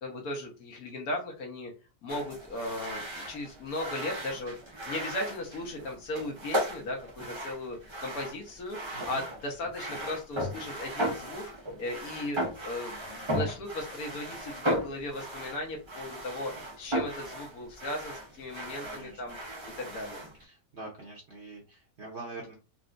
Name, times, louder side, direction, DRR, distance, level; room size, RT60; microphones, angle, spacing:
voice 1, 0.0-1.7 2.0-11.4 11.8-19.4 19.6-20.2, left 1 dB, 70° left, 1 dB, 1.3 m, -37 dB
sound 1, 2.1-20.4, equal, 35° right, 0.4 m, -36 dB
voice 2, 18.8-19.2 20.4-22.5, right 2 dB, 50° right, -2 dB, 1.0 m, -44 dB
3.9 x 2.2 x 2.5 m, 0.31 s
omnidirectional pair, 1.7 m